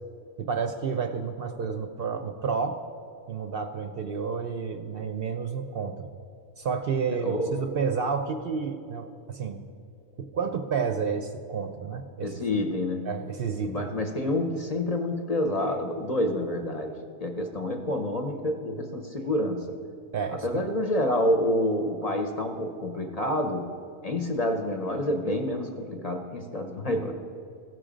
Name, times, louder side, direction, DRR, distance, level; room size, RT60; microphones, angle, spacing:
voice 1, 0.4-2.8 3.3-6.1 6.6-9.7 10.2-12.3 13.1-13.9 20.1-20.6, right 5 dB, 60° right, 6 dB, 0.7 m, -30 dB
voice 2, 7.1-7.6 12.2-13.1 13.6-19.7 20.3-23.7 24.0-27.1, left 1 dB, 40° left, 4 dB, 0.7 m, -28 dB
15.5 x 6.3 x 5.0 m, 2.7 s
omnidirectional pair, 1.3 m